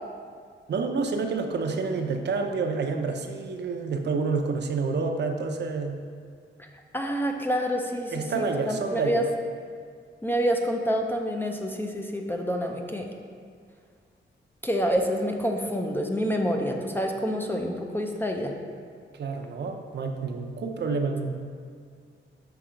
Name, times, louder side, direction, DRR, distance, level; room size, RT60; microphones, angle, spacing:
voice 1, 0.7-6.0 8.1-9.3 19.1-21.3, right 4 dB, 60° right, 4 dB, 0.6 m, -28 dB
voice 2, 6.9-9.2 10.2-13.1 14.6-18.6, equal, 10° left, 2 dB, 0.5 m, -27 dB
5.8 x 4.7 x 5.0 m, 2.1 s
wide cardioid pair, 140°, 20 cm